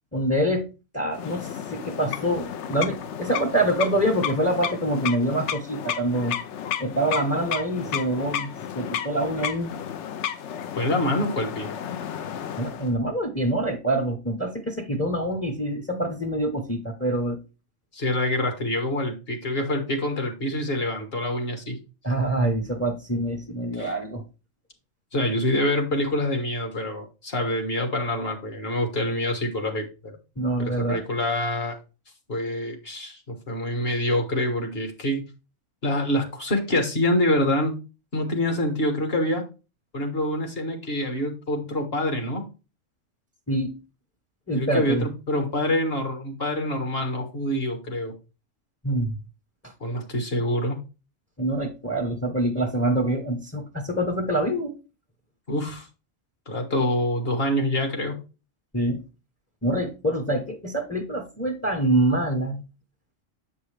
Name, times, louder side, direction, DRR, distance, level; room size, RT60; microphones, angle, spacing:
voice 1, 0.1-0.7 0.9-6.4 6.8-9.7 12.6-17.4 22.0-24.2 30.4-31.0 43.5-43.7 44.5-45.1 48.8-49.2 49.6-49.7 51.4-54.7 58.7-59.0 59.6-62.6, right 1 dB, 15° left, 4 dB, 0.7 m, -25 dB
sound 1, 1.1-12.9, left 9 dB, 65° left, 0.9 m, -32 dB
voice 2, 10.8-11.7 17.9-21.8 23.8-24.0 25.1-30.2 30.6-31.8 32.3-35.2 35.8-37.8 38.1-39.4 39.9-42.4 44.5-48.1 49.8-50.8 55.5-55.9 56.5-58.2, left 1 dB, 50° left, 4 dB, 1.6 m, -26 dB
7.8 x 5.4 x 3.3 m, 0.30 s
omnidirectional pair, 1.3 m